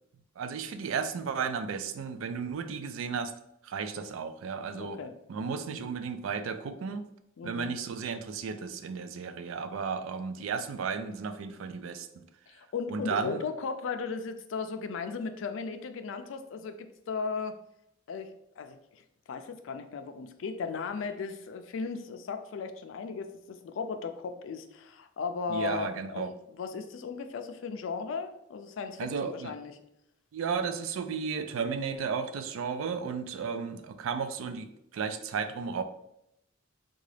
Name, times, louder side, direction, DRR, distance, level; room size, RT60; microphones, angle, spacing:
voice 1, 0.4-3.3 3.6-5.0 5.3-7.1 7.4-12.2 12.9-13.4 25.5-26.3 29.0-29.5 30.3-35.8, right 5 dB, 80° right, 10 dB, 0.3 m, -34 dB
voice 2, 4.8-5.1 7.4-7.7 12.5-17.6 18.1-18.3 18.6-19.0 19.3-29.7, left 5 dB, 70° left, 8 dB, 0.4 m, -36 dB
3.8 x 2.3 x 3.2 m, 0.80 s
head